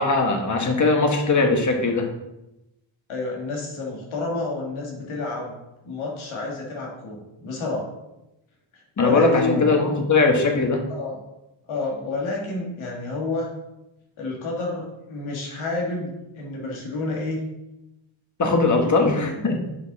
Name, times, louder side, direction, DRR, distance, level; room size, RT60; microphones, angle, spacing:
voice 1, 0.0-2.1 9.0-10.8 18.4-19.5, left 3 dB, 40° left, 3 dB, 1.4 m, -20 dB
voice 2, 3.1-5.5 5.8-7.9 8.7-9.7 10.9-11.2 11.7-13.5 14.2-17.4 18.8-19.4, left 3 dB, 85° left, -1 dB, 2.0 m, -29 dB
7.0 x 5.4 x 4.1 m, 0.94 s
cardioid pair, 100°, 47 cm